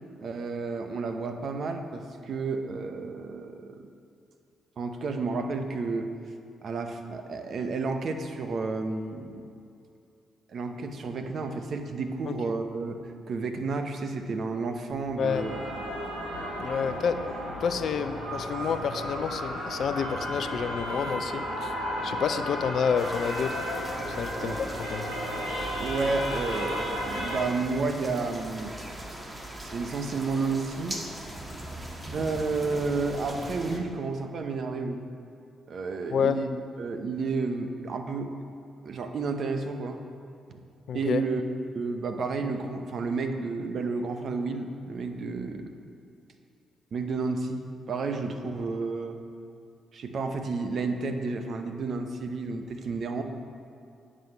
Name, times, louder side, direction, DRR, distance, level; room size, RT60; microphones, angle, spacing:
voice 1, 0.2-3.8 4.8-6.1 6.6-9.5 10.5-13.0 13.3-15.6 16.8-17.0 24.3-24.6 25.8-28.8 29.6-31.0 32.1-35.1 35.7-36.5 36.8-38.3 38.8-40.0 40.5-40.6 40.9-41.4 41.7-45.7 46.9-49.2 49.9-53.2, right 4 dB, 60° right, 6 dB, 0.8 m, -31 dB
sound 1, 14.9-28.9, right 2 dB, 40° right, 2.0 m, -49 dB
sound 2, 15.2-27.4, equal, 90° right, 1.8 m, -34 dB
voice 2, 16.6-17.2 17.6-21.7 22.0-23.6 24.1-25.2 36.1-36.4 40.9-41.2, left 7 dB, 65° left, 11 dB, 0.4 m, -29 dB
sound 3, 23.0-33.8, right 1 dB, 20° right, 1.5 m, -40 dB
9.5 x 6.3 x 5.3 m, 2.5 s
hypercardioid pair, 45°, 0 cm